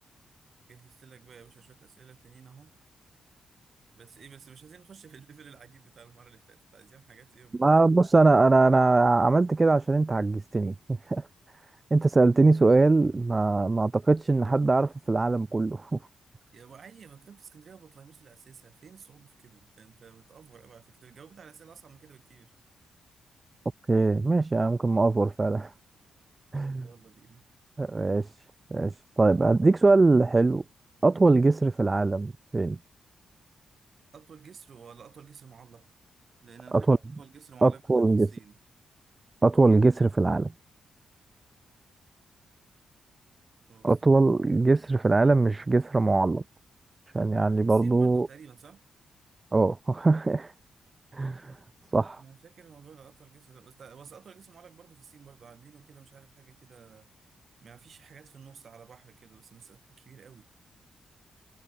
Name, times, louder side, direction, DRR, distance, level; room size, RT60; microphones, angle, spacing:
voice 1, 0.7-2.7 4.0-7.6 16.5-22.5 26.5-27.5 34.1-35.9 36.4-38.6 43.7-44.3 47.6-48.8 52.2-57.1 57.6-60.5, right 6 dB, 50° right, 6.9 m, -52 dB
voice 2, 7.6-10.7 11.1-11.3 11.9-16.0 23.9-25.7 26.5-26.8 27.8-28.3 28.7-30.6 31.0-32.8 36.7-37.0 37.6-38.3 39.4-40.5 43.8-46.4 47.1-48.3 49.5-50.5 51.1-51.6 51.9-52.2, right 3 dB, 25° right, 0.3 m, -22 dB
cardioid pair, 105°, 0 cm